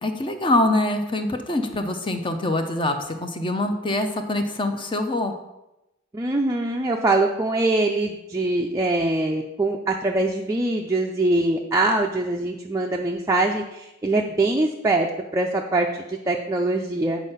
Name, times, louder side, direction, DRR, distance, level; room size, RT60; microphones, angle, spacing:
voice 1, 0.0-5.3, left 1 dB, 25° left, 6 dB, 0.6 m, -24 dB
voice 2, 6.1-15.1 15.3-17.3, right 2 dB, 15° right, 1 dB, 0.5 m, -23 dB
8.3 x 4.4 x 5.6 m, 0.93 s
head